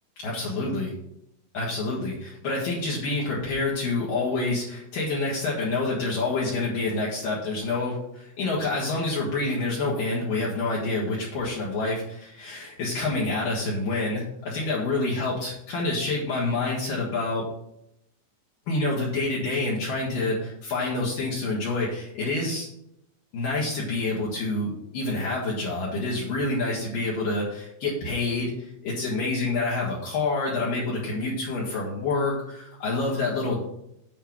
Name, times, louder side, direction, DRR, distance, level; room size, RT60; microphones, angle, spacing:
voice 1, 0.2-0.9 1.5-17.4 18.7-22.7 23.3-33.6, left 2 dB, 60° left, -6 dB, 3.0 m, -27 dB
8.9 x 4.5 x 6.2 m, 0.78 s
omnidirectional pair, 5.1 m